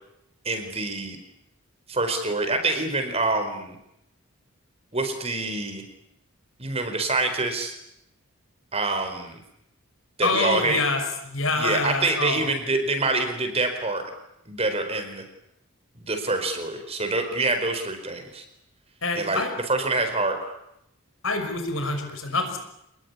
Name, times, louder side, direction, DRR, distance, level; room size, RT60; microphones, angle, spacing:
voice 1, 0.4-1.2 1.9-3.8 4.9-5.8 6.6-7.7 8.7-9.4 10.2-10.8 11.6-14.0 14.5-15.2 16.0-18.4 19.2-19.4 19.7-20.4, right 2 dB, 30° right, 6 dB, 4.6 m, -26 dB
voice 2, 10.2-12.5 19.0-19.5 21.2-22.6, left 3 dB, 70° left, 6 dB, 5.8 m, -26 dB
28.5 x 20.5 x 9.8 m, 0.82 s
head